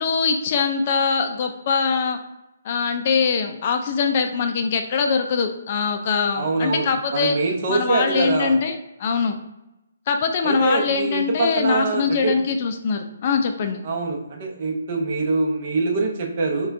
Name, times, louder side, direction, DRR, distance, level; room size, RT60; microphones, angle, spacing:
voice 1, 0.0-2.2 2.6-7.4 7.7-8.7 9.0-9.4 10.1-13.8, left 5 dB, 40° left, 6 dB, 0.3 m, -22 dB
voice 2, 6.4-8.6 10.4-12.4 13.8-16.7, right 3 dB, 40° right, 1 dB, 0.7 m, -24 dB
4.2 x 2.3 x 2.6 m, 0.93 s
hypercardioid pair, 150°, 0 cm